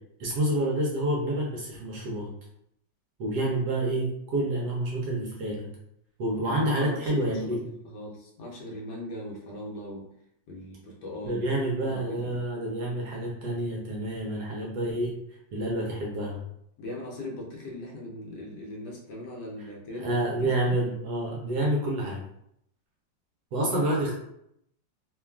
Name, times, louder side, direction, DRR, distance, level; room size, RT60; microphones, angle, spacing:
voice 1, 0.2-2.3 3.2-5.7 6.2-7.7 11.2-15.2 15.5-16.4 20.0-22.2 23.5-24.1, right 1 dB, 70° right, -3 dB, 1.0 m, -28 dB
voice 2, 6.4-10.1 10.5-11.5 11.8-12.4 16.8-20.8, left 1 dB, 70° left, -1 dB, 1.2 m, -39 dB
3.1 x 2.2 x 2.3 m, 0.75 s
omnidirectional pair, 2.0 m